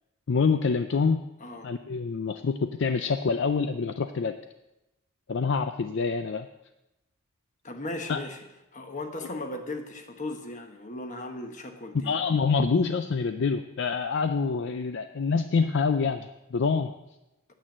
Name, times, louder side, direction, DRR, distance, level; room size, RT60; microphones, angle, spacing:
voice 1, 0.3-1.2 1.6-4.4 5.3-6.5 8.1-8.2 12.0-16.9, left 5 dB, 55° left, 9 dB, 0.4 m, -26 dB
voice 2, 1.4-1.7 7.6-8.4 8.7-12.1, left 2 dB, 35° left, 5 dB, 1.3 m, -37 dB
8.9 x 8.9 x 7.3 m, 0.95 s
head